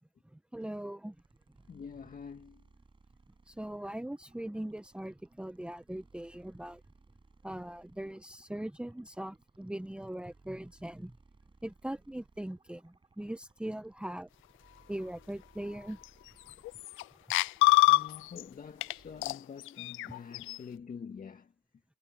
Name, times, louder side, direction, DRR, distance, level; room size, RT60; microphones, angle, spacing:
voice 1, 0.5-1.1 3.5-6.8 7.4-11.1 11.6-14.3 14.9-16.0, right 1 dB, 5° right, 1.3 m, -40 dB
sound 1, 1.1-19.3, right 3 dB, 25° right, 7.4 m, -64 dB
voice 2, 1.7-2.7 17.9-21.5, left 6 dB, 45° left, 2.0 m, -46 dB
sound 2, 16.0-16.1 16.5-17.0 17.3-18.4 18.8-18.9 19.2-20.6, left 20 dB, 85° left, 0.4 m, -26 dB
cardioid pair, 90°, 20 cm